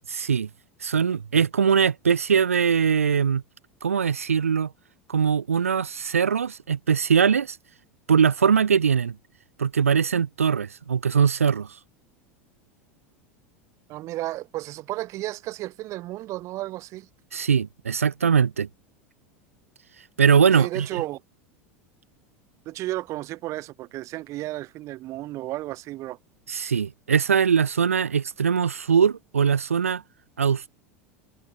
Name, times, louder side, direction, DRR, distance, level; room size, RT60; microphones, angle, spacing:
voice 1, 0.1-0.5 0.8-3.4 3.8-4.7 5.1-7.6 8.1-9.2 9.6-11.7 17.3-18.7 20.2-20.9 26.5-30.0 30.4-30.8, right 7 dB, 75° right, 0.6 m, -21 dB
voice 2, 13.9-17.1 20.5-21.2 22.6-26.2, right 17 dB, 40° right, 4.8 m, -33 dB
figure-of-eight pair, 80°, 7 cm